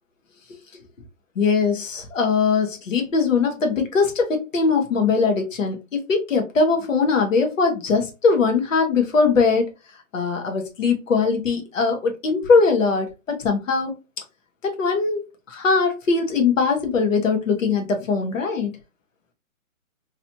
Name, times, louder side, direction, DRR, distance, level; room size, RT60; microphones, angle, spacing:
voice 1, 1.3-9.6 10.1-14.0 14.6-18.7, left 4 dB, 60° left, 4 dB, 1.3 m, -21 dB
3.1 x 2.9 x 2.7 m, 0.25 s
hypercardioid pair, 160°, 42 cm